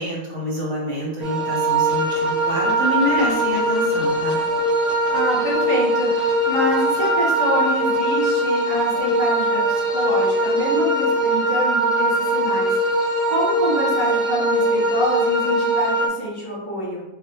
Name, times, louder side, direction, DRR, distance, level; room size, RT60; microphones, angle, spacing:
voice 1, 0.0-4.4, left 1 dB, 75° right, -4 dB, 1.5 m, -26 dB
sound 1, 1.2-16.1, right 1 dB, ahead, 0.5 m, -21 dB
voice 2, 5.1-17.0, equal, 15° left, -10 dB, 1.4 m, -26 dB
4.0 x 2.7 x 3.0 m, 0.97 s
omnidirectional pair, 1.5 m